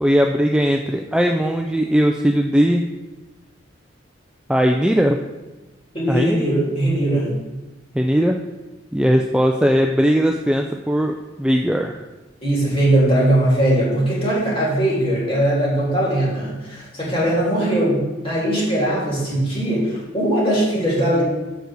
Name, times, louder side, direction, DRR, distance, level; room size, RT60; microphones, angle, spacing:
voice 1, 0.0-2.9 4.5-5.2 6.1-6.4 7.9-8.4 8.9-12.0, equal, 5° right, 2 dB, 0.3 m, -18 dB
voice 2, 5.9-7.4 12.4-21.2, right 1 dB, 30° left, -6 dB, 2.9 m, -20 dB
6.7 x 4.8 x 6.2 m, 1.1 s
head